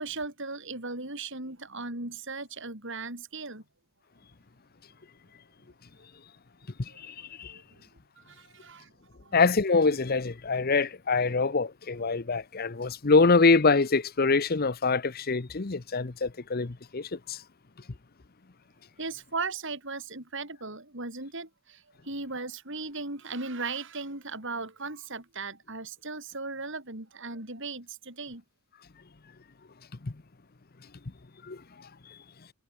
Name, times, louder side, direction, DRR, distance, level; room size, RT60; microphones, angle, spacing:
voice 1, 0.0-3.6 6.9-7.0 7.4-7.8 8.2-8.9 9.2-9.4 19.0-28.4, right 3 dB, 60° right, 6.8 m, -37 dB
voice 2, 7.1-7.5 9.3-17.4 31.5-31.6, left 4 dB, 45° left, 0.8 m, -24 dB
head